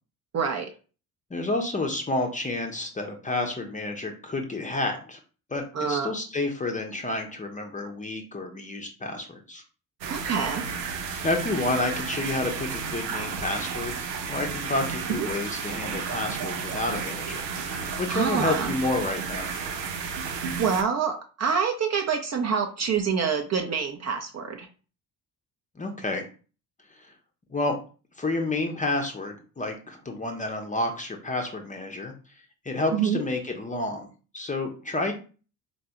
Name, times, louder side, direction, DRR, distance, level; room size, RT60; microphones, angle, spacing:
voice 1, 0.3-0.7 5.7-6.1 10.1-10.6 15.2-15.3 18.1-18.7 20.6-24.7 32.9-33.2, right 6 dB, 35° right, 4 dB, 0.6 m, -26 dB
voice 2, 1.3-5.2 5.5-9.6 11.2-13.9 14.2-19.5 25.8-26.3 27.5-27.7 28.2-32.1 32.6-34.1 34.3-35.1, left 2 dB, 15° left, 3 dB, 0.7 m, -30 dB
sound 1, 10.0-20.8, right 5 dB, 80° right, 0.5 m, -32 dB
3.9 x 2.2 x 2.9 m, 0.36 s
figure-of-eight pair, 45°, 49 cm